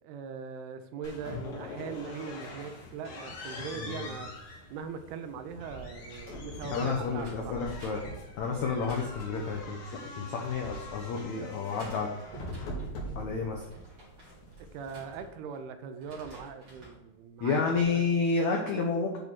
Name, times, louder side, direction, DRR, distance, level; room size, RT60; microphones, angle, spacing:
voice 1, 0.0-4.3 4.7-7.6 14.7-18.0, right 6 dB, 80° right, 8 dB, 2.6 m, -41 dB
sound 1, 1.0-15.1, left 1 dB, 55° left, 2.7 m, -43 dB
voice 2, 3.7-4.1 6.7-8.0 8.4-12.1 13.1-13.7 17.4-19.2, left 4 dB, 85° left, 1 dB, 1.6 m, -30 dB
sound 2, 4.7-11.7 12.1-12.2 12.6-12.7, equal, 30° left, 1.2 m, -51 dB
sound 3, 7.2-9.6 10.3-11.3 11.7-12.9 13.4-15.6 15.9-17.0 17.5-17.9, right 2 dB, 40° right, 3.9 m, -50 dB
8.5 x 5.5 x 4.5 m, 1.1 s
omnidirectional pair, 4.7 m